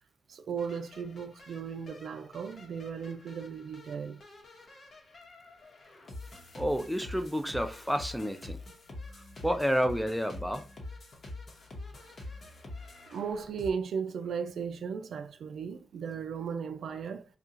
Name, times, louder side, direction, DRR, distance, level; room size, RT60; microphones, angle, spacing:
voice 1, 0.3-4.2 13.1-17.2, right 6 dB, 80° right, 0.3 m, -36 dB
sound 1, 0.6-13.7, left 2 dB, 60° left, 1.0 m, -46 dB
voice 2, 6.5-8.6 9.4-10.6, equal, 5° right, 0.5 m, -30 dB
2.7 x 2.4 x 3.7 m
cardioid pair, 75°, 0 cm